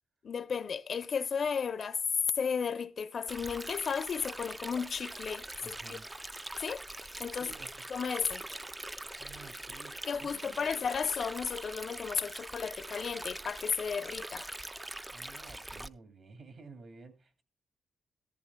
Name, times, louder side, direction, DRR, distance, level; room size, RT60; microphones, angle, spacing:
voice 1, 0.2-2.0 2.3-6.0 6.6-7.5 7.9-8.4 10.1-14.5, left 6 dB, 55° left, 0.7 m, -34 dB
Stream, 3.3-15.9, right 1 dB, 15° right, 0.5 m, -43 dB
voice 2, 5.6-6.1 7.4-7.8 9.2-10.6 15.1-17.4, right 4 dB, 60° right, 2.6 m, -52 dB
14.0 x 14.0 x 2.3 m
cardioid pair, 90°, 0 cm